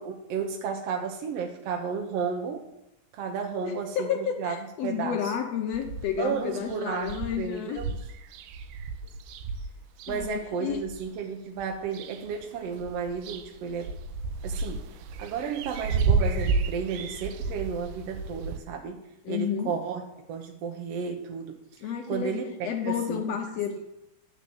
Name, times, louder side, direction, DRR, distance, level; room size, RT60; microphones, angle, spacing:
voice 1, 0.0-2.7 3.1-4.5 4.8-5.3 6.2-7.1 7.4-7.9 10.1-13.9 14.4-14.8 15.2-19.0 19.3-21.6 22.1-23.4, right 6 dB, 70° right, 2 dB, 1.6 m, -33 dB
voice 2, 3.6-7.8 10.1-10.8 19.2-19.7 21.8-23.8, left 8 dB, 75° left, 4 dB, 1.5 m, -31 dB
sound 1, 5.7-6.3 6.7-6.8 7.0-11.1 11.6-12.4 12.7-18.6, right 4 dB, 85° right, 2.2 m, -31 dB
11.0 x 4.3 x 7.7 m, 0.86 s
omnidirectional pair, 3.8 m